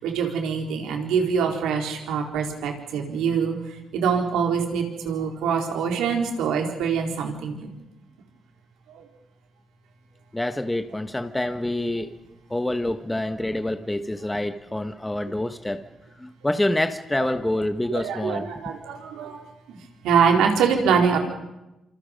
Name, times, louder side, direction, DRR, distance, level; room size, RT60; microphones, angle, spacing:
voice 1, 0.0-3.5 3.9-7.7 9.0-9.1 17.9-19.4 19.7-19.8 20.0-21.2, right 6 dB, 90° right, 2 dB, 4.3 m, -24 dB
voice 2, 10.3-12.1 12.5-15.8 16.2-18.5, left 1 dB, 10° left, 8 dB, 1.3 m, -27 dB
27.5 x 27.0 x 5.3 m, 0.97 s
cardioid pair, 90°, 0 cm